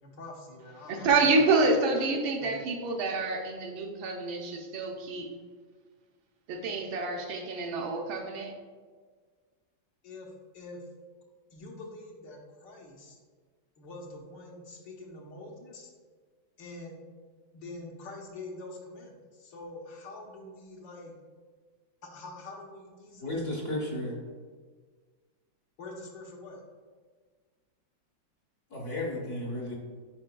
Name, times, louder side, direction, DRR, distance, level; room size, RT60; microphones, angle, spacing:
voice 1, 0.0-2.1 2.4-2.5 10.0-10.3 10.5-10.8 11.5-13.2 13.8-15.9 16.6-16.9 17.5-21.1 22.0-23.9 25.8-26.6, left 2 dB, 70° left, 0 dB, 1.5 m, -45 dB
voice 2, 0.9-5.3 6.5-8.5, right 3 dB, 80° right, 2 dB, 1.6 m, -27 dB
voice 3, 23.2-24.2 28.7-29.8, left 1 dB, 50° left, -2 dB, 1.0 m, -33 dB
8.8 x 4.8 x 2.2 m, 1.5 s
omnidirectional pair, 2.2 m